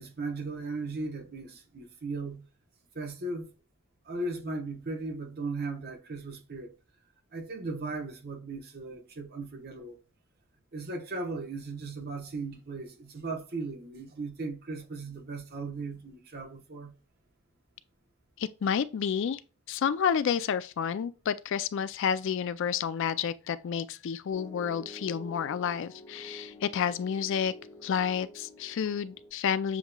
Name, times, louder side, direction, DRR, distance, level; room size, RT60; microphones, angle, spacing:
voice 1, 0.0-2.4 2.9-3.5 4.0-6.7 7.3-10.0 10.7-16.9, right 3 dB, 50° right, 1.0 m, -37 dB
voice 2, 18.4-19.4 19.7-27.5 27.8-29.8, left 7 dB, 60° left, 0.3 m, -30 dB
Piano, 24.3-29.3, left 1 dB, 25° left, 1.3 m, -48 dB
7.1 x 3.0 x 2.2 m
head